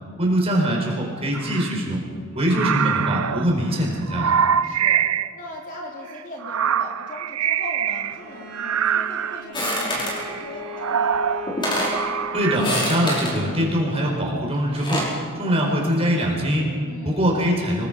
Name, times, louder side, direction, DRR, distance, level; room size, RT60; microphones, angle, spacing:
voice 1, 0.2-2.0 2.3-4.3 12.3-15.1 15.4-16.7 17.0-17.9, equal, 25° right, -1 dB, 5.0 m, -22 dB
sound 1, 1.3-1.8 2.5-5.3 6.2-8.2 8.5-9.4 9.9-12.6, right 8 dB, 70° right, 0.5 m, -24 dB
voice 2, 4.6-5.1 5.3-11.5 16.8-17.3, left 1 dB, 35° left, -1 dB, 3.6 m, -39 dB
Bowed string instrument, 8.1-13.2, left 2 dB, 50° right, 5.4 m, -37 dB
sound 2, 9.5-10.2 11.1-11.2 11.5-12.0 12.5-13.4 14.5-15.2, equal, 20° left, 5.4 m, -26 dB
27.5 x 20.5 x 5.4 m, 2.1 s
head